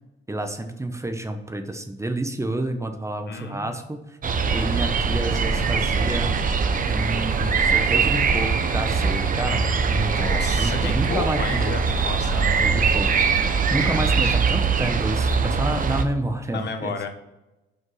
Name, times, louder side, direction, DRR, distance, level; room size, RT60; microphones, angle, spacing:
voice 1, 0.3-4.2 4.5-6.3 6.9-11.8 12.6-13.1 13.6-16.9, right 1 dB, 15° right, 7 dB, 0.9 m, -29 dB
voice 2, 3.3-3.7 10.1-12.7 13.8-14.3 16.5-17.2, left 5 dB, 60° left, 6 dB, 1.1 m, -32 dB
sound 1, 4.2-16.0, right 5 dB, 45° right, 0.8 m, -22 dB
5.7 x 5.5 x 5.6 m, 0.99 s
cardioid pair, 90°, 20 cm